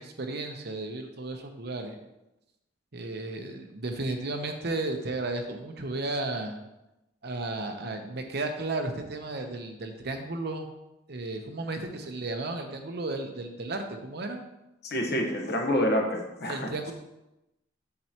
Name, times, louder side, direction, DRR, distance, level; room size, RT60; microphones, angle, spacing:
voice 1, 0.0-2.0 2.9-6.5 7.2-10.7 11.1-14.4 16.5-16.9, right 2 dB, 60° right, 5 dB, 0.8 m, -34 dB
voice 2, 14.8-16.9, left 1 dB, 60° left, 2 dB, 1.2 m, -28 dB
7.6 x 6.8 x 3.0 m, 0.93 s
head